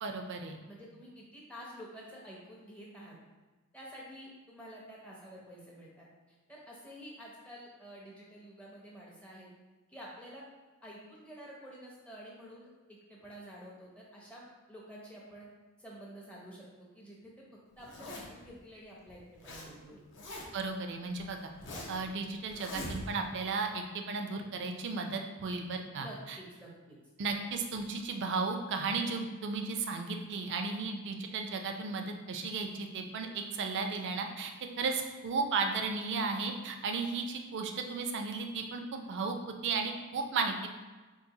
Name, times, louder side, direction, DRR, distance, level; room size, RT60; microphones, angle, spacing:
voice 1, 0.0-0.6 20.5-21.5 21.9-26.1 27.2-34.5 34.8-40.7, right 4 dB, 55° right, 4 dB, 0.4 m, -34 dB
voice 2, 0.7-3.2 3.7-6.1 6.5-9.5 9.9-10.5 10.8-15.4 15.8-17.4 17.8-20.0 26.0-27.0, equal, 5° left, -4 dB, 0.5 m, -49 dB
Zipper (clothing), 17.8-18.5 19.1-19.7 19.9-20.7 21.2-22.0 22.5-23.3, left 1 dB, 55° left, 0.7 m, -43 dB
3.9 x 2.5 x 2.7 m, 1.2 s
head